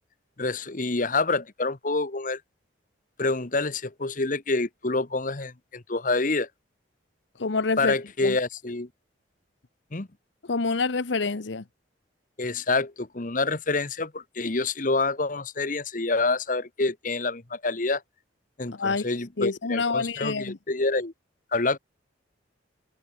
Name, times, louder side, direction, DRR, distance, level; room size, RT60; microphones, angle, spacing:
voice 1, 0.4-2.4 3.2-6.5 7.8-8.9 9.9-10.1 12.4-18.0 18.6-21.1 21.5-21.8, left 3 dB, 45° left, 1.2 m, -27 dB
voice 2, 7.4-7.9 8.2-8.4 10.5-11.6 18.7-19.0 19.4-20.6, left 4 dB, 70° left, 0.9 m, -27 dB
head